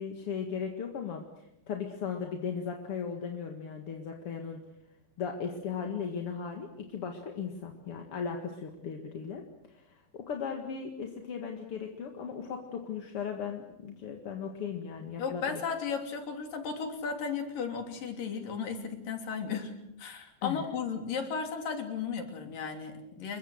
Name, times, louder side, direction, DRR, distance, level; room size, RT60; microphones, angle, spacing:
voice 1, 0.0-4.6 5.2-9.4 9.7-15.6 20.4-20.7, left 6 dB, 45° left, 3 dB, 2.3 m, -37 dB
voice 2, 15.2-19.7 20.0-23.4, left 6 dB, 70° left, 5 dB, 4.8 m, -35 dB
28.5 x 23.0 x 6.5 m, 0.82 s
omnidirectional pair, 4.2 m